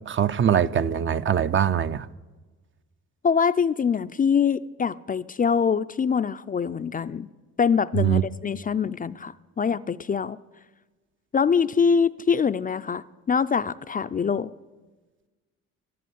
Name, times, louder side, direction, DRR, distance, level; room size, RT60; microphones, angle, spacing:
voice 1, 0.1-2.1 7.9-8.2, right 8 dB, 40° right, 0.6 m, -22 dB
voice 2, 3.2-7.3 7.6-10.4 11.3-14.5, left 6 dB, 30° left, 0.4 m, -24 dB
12.0 x 11.0 x 9.3 m
cardioid pair, 90°, 30 cm